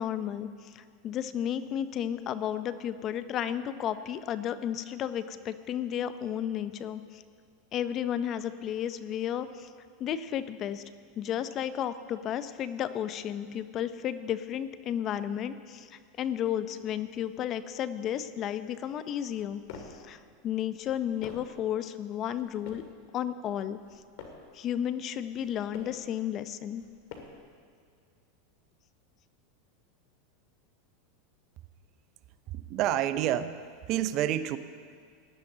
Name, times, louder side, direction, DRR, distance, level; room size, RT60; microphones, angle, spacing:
voice 1, 0.0-7.2 7.7-9.7 10.0-10.8 11.2-19.6 20.0-20.2 20.4-22.8 23.1-23.8 24.5-26.8, left 10 dB, 40° left, 13 dB, 0.6 m, -33 dB
sound 1, 19.2-20.1 20.7-21.6 22.3-23.0 23.6-24.5 25.2-26.1 26.7-27.5, left 6 dB, 65° left, 1.9 m, -48 dB
voice 2, 32.5-33.6 33.9-34.6, right 11 dB, 50° right, 13 dB, 0.5 m, -28 dB
18.0 x 10.5 x 3.9 m, 2.2 s
hypercardioid pair, 110°, 0 cm